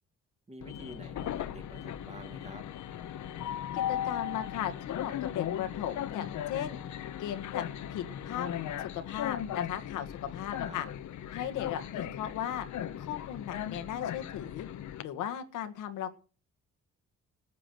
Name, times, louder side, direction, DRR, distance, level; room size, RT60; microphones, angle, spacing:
voice 1, 0.5-2.6 10.6-10.8, right 1 dB, 20° right, 7 dB, 2.0 m, -49 dB
Train, 0.6-15.0, left 10 dB, 70° left, 1.0 m, -37 dB
voice 2, 3.7-6.8 7.2-7.6 7.9-8.5 8.9-10.9 11.3-12.7 13.0-14.7 15.0-16.1, left 10 dB, 90° left, 6 dB, 1.7 m, -36 dB
15.0 x 8.5 x 7.7 m, 0.39 s
cardioid pair, 90°, 30 cm